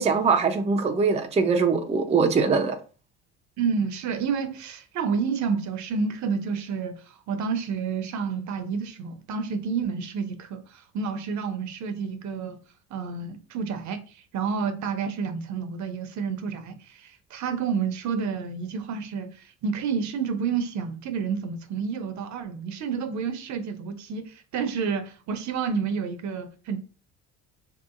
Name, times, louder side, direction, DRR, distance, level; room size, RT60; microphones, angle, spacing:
voice 1, 0.0-2.8, right 5 dB, 20° right, 0.5 m, -22 dB
voice 2, 3.6-12.6 12.9-26.8, right 6 dB, 50° right, 0.7 m, -29 dB
3.5 x 2.8 x 2.5 m
supercardioid pair, 80°, 36 cm